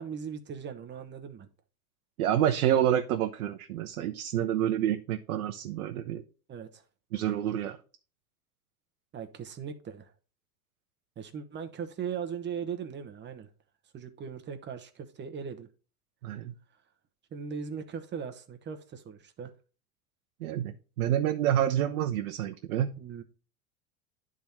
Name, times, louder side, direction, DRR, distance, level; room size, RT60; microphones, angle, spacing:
voice 1, 0.0-1.5 6.5-6.8 9.1-10.1 11.2-13.5 13.9-15.7 17.3-19.5 23.0-23.2, right 7 dB, 25° right, 1.0 m, -39 dB
voice 2, 2.2-6.2 7.1-7.8 16.2-16.5 20.4-22.9, right 11 dB, 70° right, 0.8 m, -28 dB
10.5 x 3.8 x 4.2 m
hypercardioid pair, 100°, 43 cm